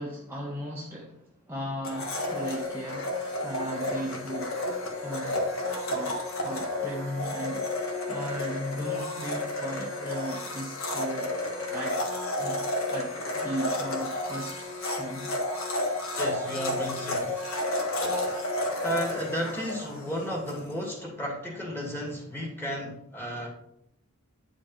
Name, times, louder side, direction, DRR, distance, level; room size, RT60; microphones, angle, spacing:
voice 1, 0.0-4.6 5.0-5.5 5.9-11.3 11.7-12.0 12.4-15.3, equal, 10° right, -4 dB, 1.0 m, -37 dB
Domestic sounds home sounds, 1.8-20.6, left 1 dB, 65° left, 1.5 m, -31 dB
voice 2, 16.1-17.4 18.8-23.5, equal, 10° left, -2 dB, 2.3 m, -33 dB
9.8 x 5.2 x 4.4 m, 0.75 s
head